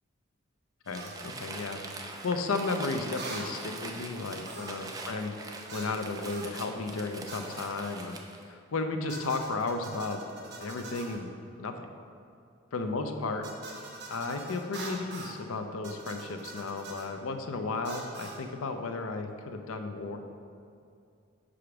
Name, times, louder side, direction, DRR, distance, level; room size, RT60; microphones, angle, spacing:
voice 1, 0.9-5.3 5.7-8.2 8.5-10.2 10.6-11.3 11.6-11.9 12.7-13.4 14.1-20.2, left 3 dB, 80° left, 6 dB, 0.5 m, -34 dB
Crumpling crinkling, 0.9-8.5, right 3 dB, 15° right, 0.4 m, -43 dB
sound 1, 0.9-1.2 3.2-3.5 4.4-4.9 5.7-6.0 6.3-6.5 7.3-7.8 9.1-11.2 13.4-15.4 15.8-17.1 17.8-18.4, right 3 dB, 50° right, 1.1 m, -44 dB
5.0 x 4.9 x 5.8 m, 2.4 s
head